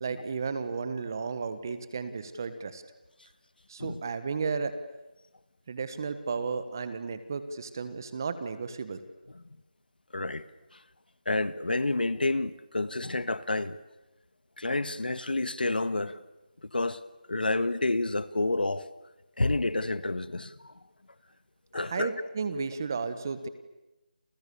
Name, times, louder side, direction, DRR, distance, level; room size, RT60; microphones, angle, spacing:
voice 1, 0.0-2.8 3.7-4.8 5.7-9.0 21.8-23.5, right 5 dB, 25° right, 1.4 m, -33 dB
voice 2, 10.1-10.4 10.7-10.8 11.3-13.8 14.6-16.2 16.6-17.0 17.3-18.9 19.4-20.7 21.7-22.2, left 2 dB, 80° left, 1.8 m, -29 dB
29.5 x 28.5 x 7.0 m
figure-of-eight pair, 175°, 5 cm